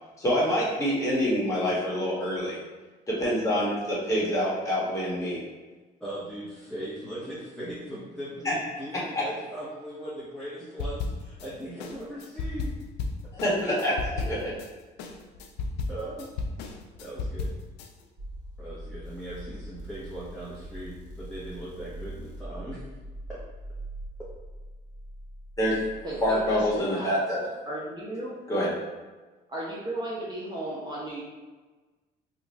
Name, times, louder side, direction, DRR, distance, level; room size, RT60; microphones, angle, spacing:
voice 1, 0.2-2.6 3.1-5.4 8.4-8.5 9.1-9.2 13.3-14.0 14.2-14.5 25.6-25.8 26.2-27.4 28.5-28.7, equal, 20° left, -7 dB, 1.3 m, -26 dB
voice 2, 6.0-12.7 15.9-16.3 17.0-17.5 18.6-22.8, right 1 dB, 5° left, -10 dB, 0.9 m, -39 dB
sound 1, 10.8-11.5 11.8-14.7 15.0-17.9, left 3 dB, 85° left, 0.4 m, -33 dB
sound 2, 18.2-26.8, right 1 dB, 50° right, 1.4 m, -42 dB
voice 3, 26.5-27.1 27.7-28.3 29.5-31.2, right 1 dB, 25° right, -6 dB, 0.8 m, -34 dB
2.9 x 2.4 x 4.0 m, 1.3 s
cardioid pair, 110°, 17 cm